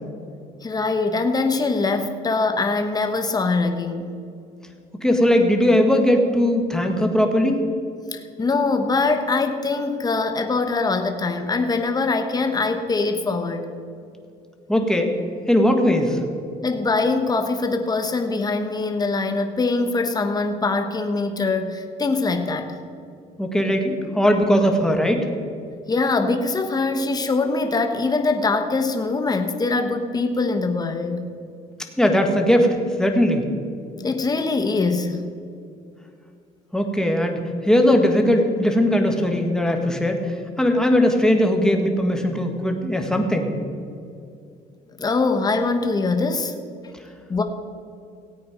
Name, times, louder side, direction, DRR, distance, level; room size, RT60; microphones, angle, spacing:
voice 1, 0.6-4.2 8.1-13.7 16.6-22.8 25.9-31.2 34.0-35.2 45.0-46.5 47.3-47.4, left 3 dB, 25° left, 6 dB, 1.2 m, -23 dB
voice 2, 5.0-7.6 14.7-15.1 15.5-16.2 23.4-25.3 32.0-33.5 36.7-43.5, equal, 5° left, 3 dB, 1.6 m, -19 dB
17.0 x 8.6 x 5.2 m, 2.4 s
cardioid pair, 110°, 17 cm